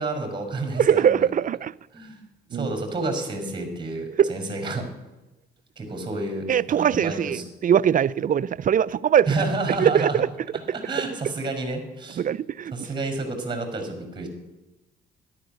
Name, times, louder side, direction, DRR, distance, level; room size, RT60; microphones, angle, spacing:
voice 1, 0.0-1.3 1.9-2.2 2.5-4.9 5.8-7.4 9.3-10.2 10.7-12.2 12.7-14.3, right 2 dB, 25° right, 5.3 m, -29 dB
voice 2, 0.7-1.7 2.5-2.7 4.2-4.3 6.5-9.3 9.8-10.3 12.2-12.7, right 9 dB, 45° right, 0.4 m, -21 dB
13.5 x 11.5 x 6.8 m
cardioid pair, 90°, 20 cm